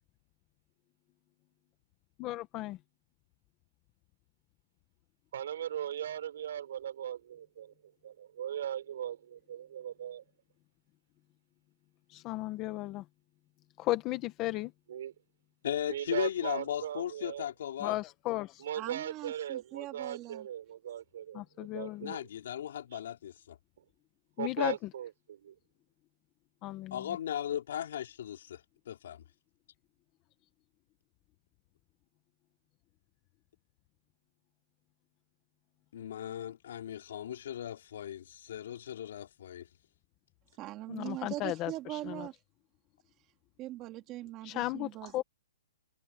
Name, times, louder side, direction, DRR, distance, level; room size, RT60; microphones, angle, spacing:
voice 1, 2.2-2.8 12.1-13.0 13.8-14.7 17.8-18.6 21.3-22.1 24.4-24.7 26.6-27.0 40.9-42.3 44.4-45.2, left 17 dB, 20° left, 1.0 m, -35 dB
voice 2, 5.3-7.7 8.0-10.2 14.9-15.1 15.9-17.5 18.6-22.2 22.9-23.0 24.4-25.5, right 10 dB, 55° right, 5.6 m, -39 dB
voice 3, 15.6-18.0 22.0-23.6 26.9-29.2 35.9-39.7, left 10 dB, 55° left, 3.9 m, -37 dB
voice 4, 18.8-20.5 40.6-42.4 43.6-45.1, right 15 dB, 20° right, 2.0 m, -41 dB
hypercardioid pair, 175°, 0 cm